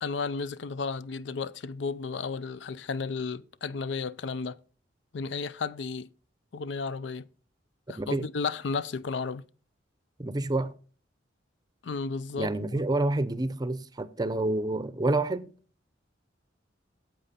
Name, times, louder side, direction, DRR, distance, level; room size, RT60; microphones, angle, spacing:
voice 1, 0.0-4.6 5.1-6.1 6.5-7.3 7.9-9.4 11.8-12.8, left 4 dB, 70° left, 0.5 m, -33 dB
voice 2, 10.2-10.8 12.3-15.5, right 2 dB, 20° right, 0.6 m, -28 dB
8.9 x 7.9 x 4.2 m
head